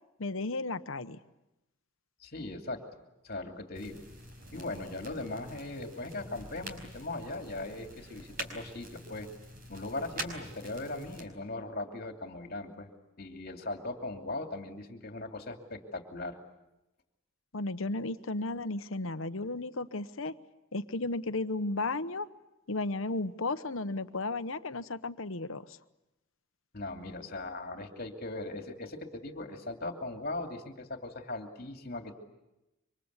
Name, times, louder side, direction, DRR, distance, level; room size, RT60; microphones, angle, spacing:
voice 1, 0.2-1.2 17.5-20.3 20.7-22.3 22.7-25.8, left 2 dB, 70° left, 11 dB, 1.0 m, -34 dB
voice 2, 2.2-2.8 3.2-4.1 4.5-9.3 9.7-12.9 13.2-16.4 26.7-32.1, left 2 dB, 45° left, 4 dB, 2.8 m, -39 dB
sound 1, 3.7-11.3, right 1 dB, 40° right, 5.1 m, -45 dB
27.0 x 25.0 x 8.2 m, 0.94 s
head